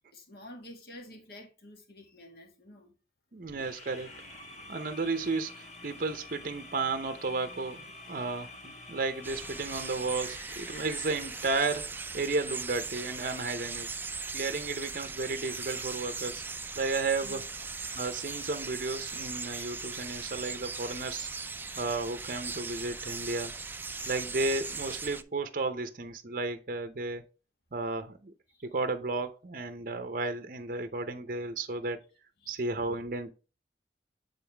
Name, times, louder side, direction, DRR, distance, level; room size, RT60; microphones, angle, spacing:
voice 1, 0.1-2.9 3.3-3.6 8.1-8.2 10.7-10.8 12.2-12.4 17.2-17.5 20.2-20.3 21.6-21.8 23.9-24.3 28.5-28.7 32.4-32.5, left 1 dB, 60° left, 1.7 m, -51 dB
voice 2, 3.3-4.1 4.7-13.9 14.3-16.4 16.7-17.4 17.9-21.3 21.8-23.5 24.0-27.3 27.7-28.3 28.6-32.0 32.5-33.3, right 3 dB, 50° right, 0.7 m, -33 dB
sound 1, 3.6-12.1, left 2 dB, 40° left, 1.5 m, -48 dB
sound 2, 9.2-25.2, right 4 dB, 10° right, 0.3 m, -39 dB
9.0 x 3.9 x 3.4 m
head